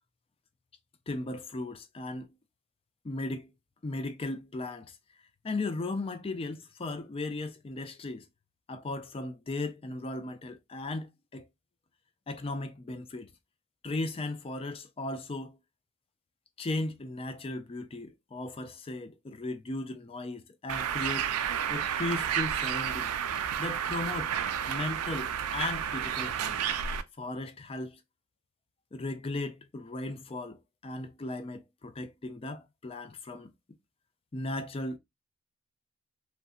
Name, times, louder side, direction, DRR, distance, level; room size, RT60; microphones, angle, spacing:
voice 1, 1.1-2.3 3.0-3.5 3.8-5.0 5.4-8.3 8.7-11.5 12.3-13.3 13.8-15.6 16.6-21.4 21.7-23.1 23.6-24.3 24.7-26.6 27.2-28.0 28.9-33.5 34.3-35.0, left 2 dB, 25° left, 0.4 m, -36 dB
Bird, 20.7-27.0, right 8 dB, 85° right, 0.4 m, -31 dB
3.1 x 2.5 x 2.6 m
head